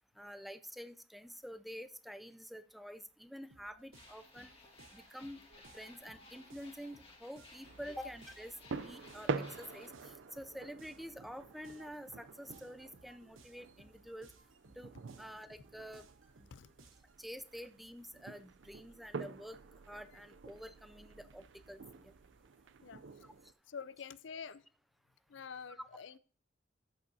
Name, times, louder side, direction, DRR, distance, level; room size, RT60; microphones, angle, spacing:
voice 1, 0.2-4.5 4.9-5.4 5.7-8.5 8.8-14.3 14.8-14.9 15.2-16.0 17.2-19.6 19.9-22.1 23.2-23.3, equal, ahead, 12 dB, 0.3 m, -48 dB
sound 1, 3.5-17.2, right 3 dB, 90° right, 1.1 m, -63 dB
sound 2, 3.9-9.9, left 3 dB, 30° left, 1.8 m, -59 dB
sound 3, 7.6-23.5, right 4 dB, 65° right, 0.5 m, -47 dB
voice 2, 22.8-23.3 23.7-24.7 25.3-26.2, left 6 dB, 65° left, 17 dB, 0.5 m, -47 dB
12.5 x 8.5 x 2.7 m, 0.41 s
head